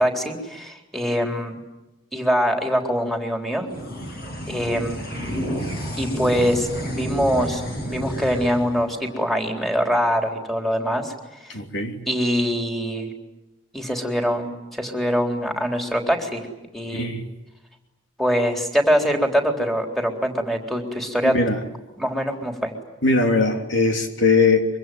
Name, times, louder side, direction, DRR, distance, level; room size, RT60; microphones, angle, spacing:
voice 1, 0.0-1.6 2.1-3.7 4.5-5.0 6.0-11.1 11.4-11.5 12.1-13.1 13.7-16.4 16.7-17.1 18.2-21.4 22.0-22.7, equal, ahead, 2 dB, 3.9 m, -23 dB
sound 1, 3.7-10.4, equal, 50° left, 8.0 m, -31 dB
voice 2, 11.5-12.0 16.9-17.2 21.2-21.6 23.0-24.7, left 3 dB, 70° left, 4 dB, 3.2 m, -20 dB
25.5 x 24.5 x 9.3 m, 0.96 s
head